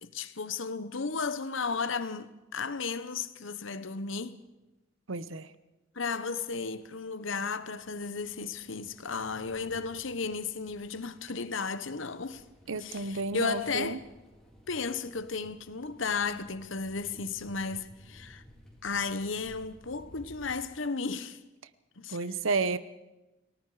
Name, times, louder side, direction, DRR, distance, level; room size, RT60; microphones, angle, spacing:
voice 1, 0.0-4.4 5.9-12.4 12.7-14.0 14.7-18.4 18.8-21.4 22.0-22.3, left 4 dB, 65° left, 1.1 m, -34 dB
voice 2, 5.1-5.5 12.7-14.0 22.1-22.8, right 4 dB, 70° right, 0.9 m, -31 dB
sound 1, 6.4-20.5, equal, 5° left, 3.9 m, -56 dB
29.0 x 18.5 x 5.0 m
head